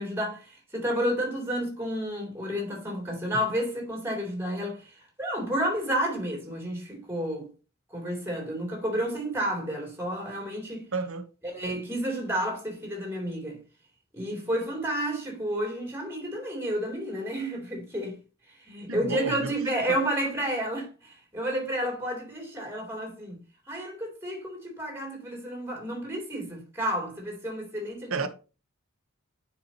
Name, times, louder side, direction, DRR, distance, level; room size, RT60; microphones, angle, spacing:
voice 1, 0.0-7.5 7.9-10.8 11.5-13.6 14.1-18.2 18.7-23.4 23.7-28.3, equal, 10° right, 2.7 m, -31 dB
voice 2, 10.9-11.3 18.9-19.6 19.9-20.0 28.1-28.3, right 3 dB, 75° right, 0.9 m, -31 dB
10.0 x 4.7 x 2.8 m
head